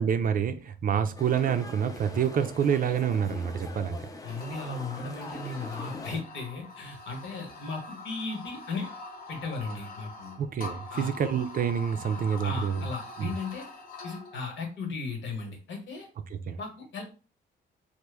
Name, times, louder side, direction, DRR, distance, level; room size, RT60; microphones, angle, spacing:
voice 1, 0.0-4.1 10.4-12.9 13.2-13.3 16.3-16.6, right 8 dB, 45° right, 0.4 m, -27 dB
sound 1, 1.2-6.2, left 2 dB, 20° left, 0.4 m, -43 dB
voice 2, 4.2-8.9 9.3-10.4 10.9-11.1 12.4-13.6 14.0-16.1 16.6-17.0, left 3 dB, 70° left, 1.2 m, -36 dB
sound 2, 4.2-14.4, left 3 dB, 50° left, 0.7 m, -44 dB
3.0 x 2.1 x 3.4 m
cardioid pair, 90°, 20 cm